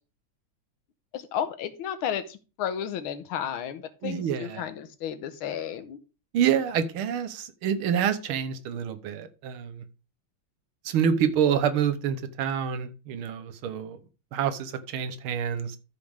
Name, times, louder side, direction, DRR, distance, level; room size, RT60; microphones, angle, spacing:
voice 1, 1.1-6.0, left 9 dB, 85° left, 1.7 m, -33 dB
voice 2, 4.0-4.6 6.3-9.8 10.8-14.0 14.3-15.8, right 8 dB, 85° right, 1.8 m, -27 dB
13.0 x 5.3 x 3.5 m
omnidirectional pair, 2.3 m